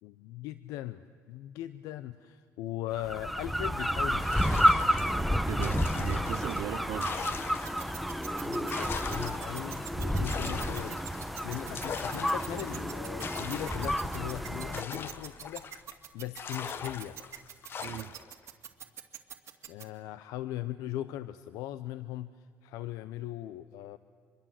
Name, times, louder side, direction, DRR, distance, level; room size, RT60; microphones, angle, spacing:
voice 1, 0.0-4.4 8.4-15.7 16.1-17.2 19.7-24.0, left 14 dB, 85° left, 0.7 m, -39 dB
sound 1, 3.0-14.8, equal, ahead, 0.9 m, -30 dB
sound 2, 4.2-8.1 8.4-16.0 16.4-18.3, left 6 dB, 40° left, 1.3 m, -41 dB
voice 2, 5.5-7.3 17.8-18.2, right 13 dB, 70° right, 0.6 m, -38 dB
sound 3, 7.6-19.8, right 11 dB, 55° right, 2.3 m, -43 dB
26.0 x 22.0 x 7.6 m
cardioid pair, 120°, 6 cm